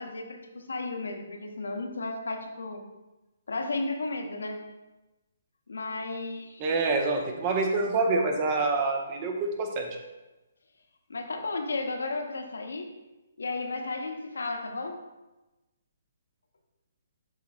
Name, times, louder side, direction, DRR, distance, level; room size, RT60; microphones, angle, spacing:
voice 1, 0.0-2.8 3.5-4.6 5.7-6.9 11.1-12.9 13.4-15.0, left 3 dB, 70° left, 4 dB, 0.9 m, -34 dB
voice 2, 6.6-9.9, right 3 dB, 30° right, 4 dB, 1.0 m, -26 dB
11.5 x 4.2 x 2.4 m, 1.1 s
figure-of-eight pair, 135°, 0 cm